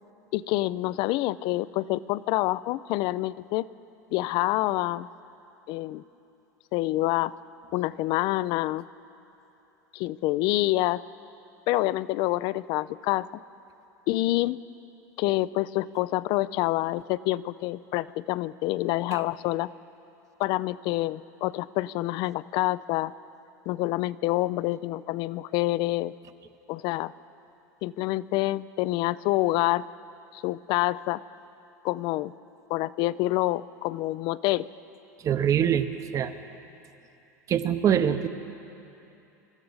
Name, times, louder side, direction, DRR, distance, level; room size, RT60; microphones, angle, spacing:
voice 1, 0.3-3.7 4.1-5.1 5.7-6.0 6.7-7.3 7.7-8.8 9.9-11.0 11.7-13.3 14.1-14.6 15.2-19.7 20.4-23.1 23.7-26.1 26.7-27.1 27.8-29.9 30.3-31.2 31.8-32.3 32.7-34.7, left 17 dB, 55° left, 19 dB, 0.4 m, -27 dB
voice 2, 35.2-35.9 36.1-36.3 37.5-38.3, right 9 dB, 35° right, 10 dB, 0.8 m, -23 dB
24.0 x 13.5 x 4.0 m, 2.9 s
hypercardioid pair, 105°, 10 cm